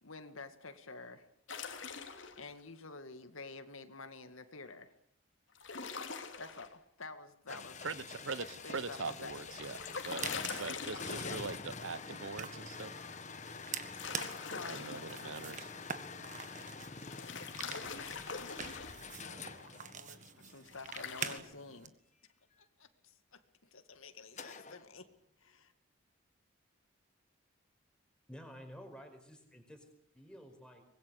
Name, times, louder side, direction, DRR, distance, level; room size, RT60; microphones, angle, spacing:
voice 1, 0.0-1.3 2.4-4.9 6.4-7.8 8.6-9.3 11.2-11.5 14.1-15.6 17.8-18.6 19.2-21.9 22.6-25.1 25.4-25.7, left 3 dB, 80° left, 9 dB, 2.2 m, -50 dB
sound 1, 1.5-2.4 5.5-6.7 9.1-11.5 13.7-15.2 17.0-19.0 20.7-21.4, left 5 dB, 65° left, 2.9 m, -43 dB
sound 2, 7.5-20.5 24.4-24.8, left 4 dB, 35° left, 1.5 m, -47 dB
voice 2, 7.8-9.8 10.0-10.3 10.6-13.0 13.6-13.7 14.7-15.8, right 4 dB, 70° right, 16 dB, 1.0 m, -42 dB
sound 3, 9.9-21.9, right 7 dB, 35° right, 1.6 m, -47 dB
voice 3, 28.3-29.9 30.1-30.8, equal, 5° left, 4 dB, 4.9 m, -51 dB
24.5 x 21.0 x 8.3 m, 0.71 s
head